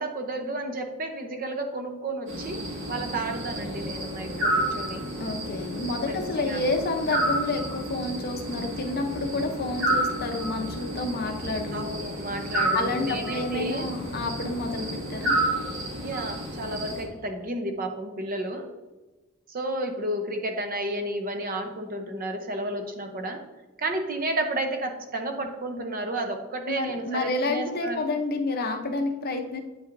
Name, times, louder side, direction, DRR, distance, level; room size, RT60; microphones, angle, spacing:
voice 1, 0.0-2.6 2.9-5.0 6.1-6.6 11.7-13.9 16.0-18.7 19.5-23.4 23.8-28.0, right 1 dB, 45° right, 5 dB, 0.7 m, -32 dB
sound 1, 2.3-17.0, right 1 dB, 60° right, 1.8 m, -30 dB
voice 2, 5.2-11.9 12.7-15.4 26.7-29.6, left 2 dB, 45° left, 4 dB, 0.7 m, -29 dB
8.9 x 5.6 x 2.6 m, 1.1 s
head